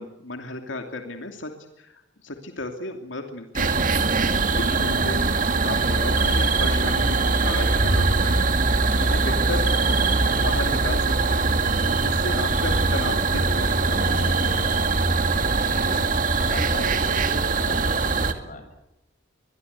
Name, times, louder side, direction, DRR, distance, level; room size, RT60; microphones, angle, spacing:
voice 1, 0.0-1.5 1.8-8.6 9.0-9.9 10.4-14.6, left 2 dB, 85° left, 5 dB, 2.8 m, -35 dB
sound 1, 3.6-18.3, right 3 dB, 45° right, 2.4 m, -22 dB
voice 2, 4.5-4.8 15.5-16.0 16.4-18.7, left 1 dB, 40° left, 7 dB, 7.2 m, -38 dB
23.5 x 22.5 x 8.3 m, 0.89 s
head